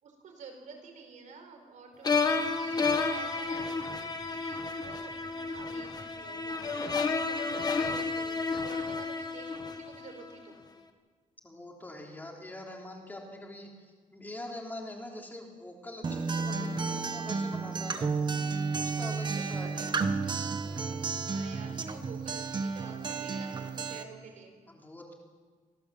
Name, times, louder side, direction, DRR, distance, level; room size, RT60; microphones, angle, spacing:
voice 1, 0.0-4.0 4.3-10.5 19.3-19.7 19.9-20.4 21.3-24.5, right 4 dB, 65° right, 4 dB, 5.0 m, -50 dB
sound 1, 2.0-10.2, left 4 dB, 30° left, 1.5 m, -31 dB
voice 2, 11.4-18.1 18.8-20.0 20.6-21.1 24.7-25.1, left 1 dB, 15° left, 0 dB, 3.4 m, -44 dB
Acoustic guitar, 16.0-24.0, right 4 dB, 35° right, 1.3 m, -32 dB
25.0 x 17.0 x 7.7 m, 1.5 s
wide cardioid pair, 180°, 14 cm